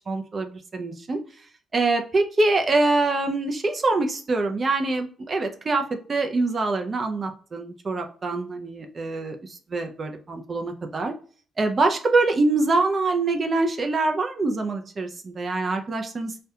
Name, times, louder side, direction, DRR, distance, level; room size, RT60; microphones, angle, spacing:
voice 1, 0.1-1.2 1.7-11.1 11.6-16.4, right 3 dB, 40° right, 4 dB, 0.4 m, -24 dB
2.3 x 2.1 x 2.7 m, 0.42 s
supercardioid pair, 60°, 0 cm